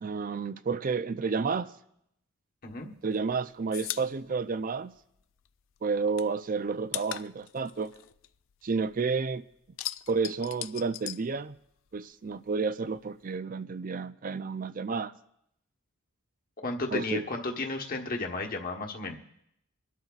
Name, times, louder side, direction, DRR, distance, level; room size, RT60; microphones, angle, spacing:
voice 1, 0.0-1.7 3.0-4.9 5.8-7.9 8.6-9.4 10.1-11.6 11.9-15.1 16.9-17.3, right 4 dB, 40° right, 0.4 m, -31 dB
sound 1, 2.7-5.5 5.8-9.1 9.4-12.0 12.2-13.3, left 14 dB, 60° left, 0.4 m, -40 dB
voice 2, 16.6-19.2, left 3 dB, 40° left, 1.2 m, -33 dB
25.5 x 12.0 x 2.4 m
head